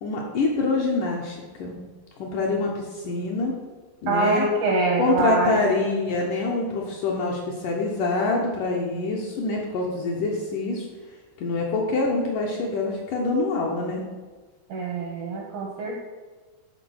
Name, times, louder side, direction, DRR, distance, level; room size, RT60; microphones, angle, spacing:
voice 1, 0.0-1.8 2.2-3.6 4.0-4.5 5.0-10.9 11.4-14.0, left 3 dB, 70° left, -1 dB, 2.1 m, -25 dB
voice 2, 4.1-5.6 14.7-16.1, right 3 dB, 70° right, 0 dB, 1.9 m, -24 dB
11.5 x 3.9 x 6.3 m, 1.4 s
omnidirectional pair, 4.8 m